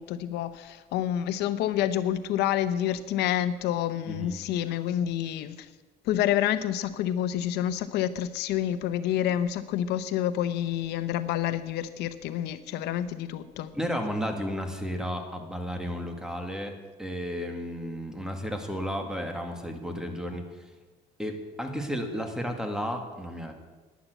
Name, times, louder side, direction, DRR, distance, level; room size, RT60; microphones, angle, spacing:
voice 1, 0.0-5.6 6.1-13.7, left 11 dB, 85° left, 12 dB, 0.8 m, -28 dB
voice 2, 4.1-4.4 13.7-20.6 21.2-23.5, equal, 5° right, 4 dB, 2.2 m, -33 dB
11.5 x 10.5 x 8.1 m, 1.3 s
cardioid pair, 110°, 17 cm